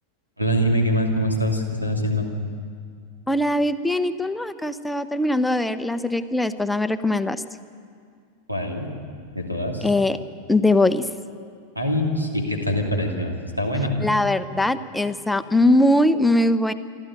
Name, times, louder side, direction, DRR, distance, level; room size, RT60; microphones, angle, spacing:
voice 1, 0.4-2.3 8.5-8.9 9.3-9.9 11.7-14.0, equal, 85° right, 2 dB, 2.8 m, -24 dB
voice 2, 3.3-7.4 9.8-10.2 10.5-11.1 14.0-16.7, left 1 dB, 5° left, 11 dB, 0.8 m, -21 dB
27.5 x 12.5 x 9.0 m, 2.2 s
figure-of-eight pair, 90°, 0 cm